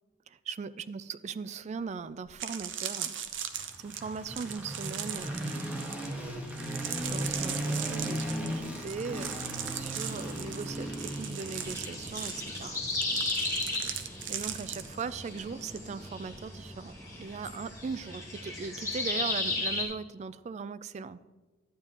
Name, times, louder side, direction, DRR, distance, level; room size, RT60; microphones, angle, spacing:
voice 1, 0.5-3.1 3.8-5.5 7.0-9.4 9.7-12.8 14.3-16.9 17.2-21.2, right 5 dB, 40° right, 15 dB, 0.3 m, -39 dB
sound 1, 1.8-1.9 2.3-15.8 16.0-16.4, right 9 dB, 80° right, 0.7 m, -39 dB
sound 2, 3.5-17.6, equal, 10° right, 1.3 m, -38 dB
sound 3, 9.5-19.8, left 2 dB, 20° left, 2.0 m, -36 dB
12.0 x 8.8 x 2.9 m, 1.2 s
head